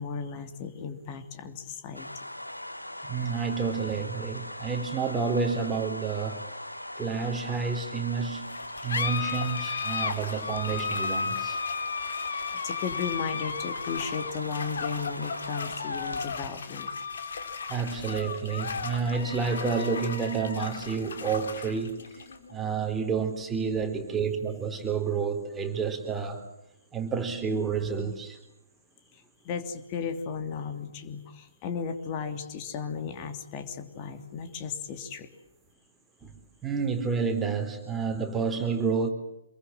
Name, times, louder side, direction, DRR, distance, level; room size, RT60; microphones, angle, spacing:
voice 1, 0.0-2.1 12.5-16.9 29.1-35.3, left 6 dB, 25° left, 7 dB, 3.0 m, -35 dB
sound 1, 1.9-16.3, left 1 dB, 85° left, 1.9 m, -40 dB
voice 2, 3.0-6.4 7.0-8.6 8.8-11.6 17.7-22.1 22.5-26.4 26.9-28.4 36.2-36.3 36.6-39.1, right 5 dB, 10° right, 4 dB, 4.0 m, -29 dB
sound 2, 8.5-25.4, left 5 dB, 55° left, 3.7 m, -35 dB
27.5 x 23.0 x 7.5 m, 0.86 s
figure-of-eight pair, 130°, 0 cm